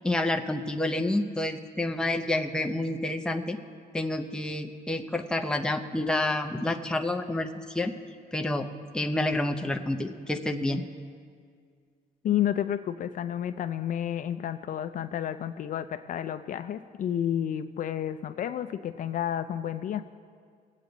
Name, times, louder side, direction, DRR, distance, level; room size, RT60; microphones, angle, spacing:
voice 1, 0.0-3.6 3.9-7.9 8.3-8.7 8.9-10.8, left 1 dB, 5° left, 4 dB, 0.6 m, -29 dB
voice 2, 12.2-20.0, left 10 dB, 50° left, 9 dB, 0.4 m, -31 dB
22.0 x 8.2 x 3.9 m, 2.1 s
cardioid pair, 145°, 17 cm